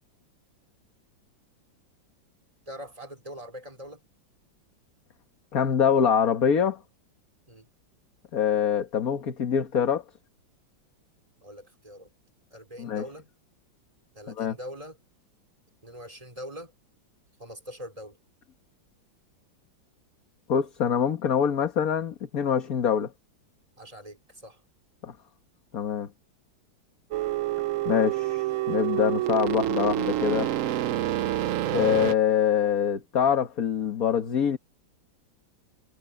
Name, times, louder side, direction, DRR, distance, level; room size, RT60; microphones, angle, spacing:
voice 1, 2.7-4.0 7.5-7.7 11.4-12.1 12.5-13.3 14.1-15.0 15.8-16.7 17.4-18.2 23.8-24.6, equal, 15° right, 4.2 m, -42 dB
voice 2, 5.5-6.8 8.3-10.0 12.8-13.0 14.4-14.6 20.5-23.1 25.0-25.1 25.7-26.1 27.9-30.5 31.7-34.6, left 8 dB, 50° left, 1.8 m, -24 dB
sound 1, 27.1-32.1, right 13 dB, 85° right, 0.7 m, -27 dB
omnidirectional pair, 2.1 m